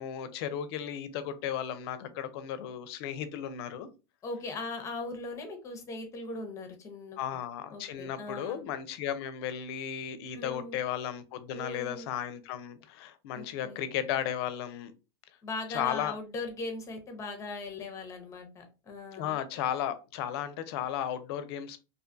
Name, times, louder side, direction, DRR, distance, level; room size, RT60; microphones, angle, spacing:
voice 1, 0.0-3.9 7.2-14.9 15.7-16.2 19.2-21.8, left 10 dB, 65° left, 0.4 m, -35 dB
voice 2, 4.2-7.2 7.7-8.6 10.4-10.8 11.5-12.1 13.3-13.8 15.4-19.4, left 3 dB, 20° left, 0.6 m, -39 dB
2.5 x 2.3 x 2.5 m
supercardioid pair, 140°, 14 cm